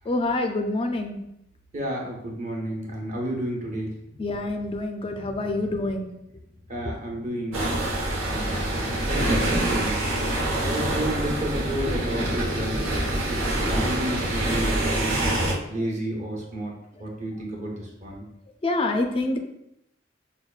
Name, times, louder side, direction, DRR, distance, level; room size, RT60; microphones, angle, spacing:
voice 1, 0.1-1.2 4.2-6.1 18.6-19.4, left 2 dB, 30° left, 4 dB, 0.3 m, -26 dB
voice 2, 1.7-4.2 5.1-5.6 6.7-7.7 8.3-10.0 10.6-15.3 15.7-16.7 17.0-18.2, right 1 dB, 40° right, -1 dB, 0.9 m, -32 dB
sound 1, 7.5-15.5, right 1 dB, 90° right, 1.0 m, -25 dB
5.8 x 2.2 x 2.4 m, 0.80 s
head